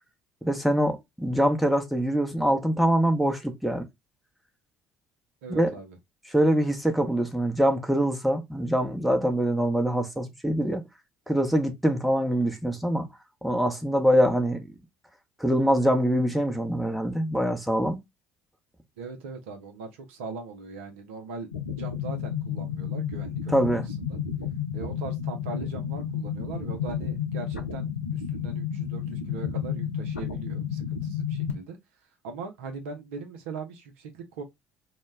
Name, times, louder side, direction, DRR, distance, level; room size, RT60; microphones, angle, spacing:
voice 1, 0.4-3.9 5.6-5.7 6.3-10.8 11.3-13.1 13.4-14.7 15.4-18.0 23.5-23.9, equal, ahead, 0.7 m, -24 dB
voice 2, 5.4-6.0 19.0-21.5 21.8-23.8 24.1-24.2 24.7-31.8 32.2-34.4, right 4 dB, 70° right, 0.5 m, -40 dB
sound 1, 21.5-31.5, left 8 dB, 85° left, 0.4 m, -31 dB
2.2 x 2.1 x 3.2 m
figure-of-eight pair, 55°, 7 cm